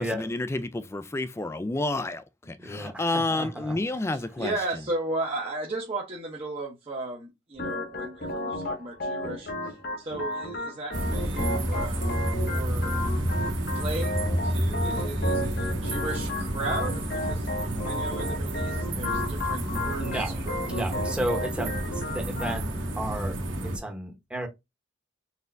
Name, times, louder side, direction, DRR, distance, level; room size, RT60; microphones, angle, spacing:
voice 1, 0.0-4.5, left 2 dB, 15° left, 0.4 m, -30 dB
voice 2, 2.6-3.8 20.0-20.4 20.7-24.5, right 1 dB, 5° right, 1.0 m, -33 dB
voice 3, 4.1-12.2 12.5-13.0 13.7-17.5 17.8-20.5 20.8-21.0, right 2 dB, 30° right, 0.9 m, -35 dB
Organ, 7.6-22.6, left 1 dB, 55° left, 1.1 m, -33 dB
sound 1, 10.9-23.8, right 1 dB, 85° right, 1.5 m, -30 dB
4.2 x 3.5 x 2.6 m
head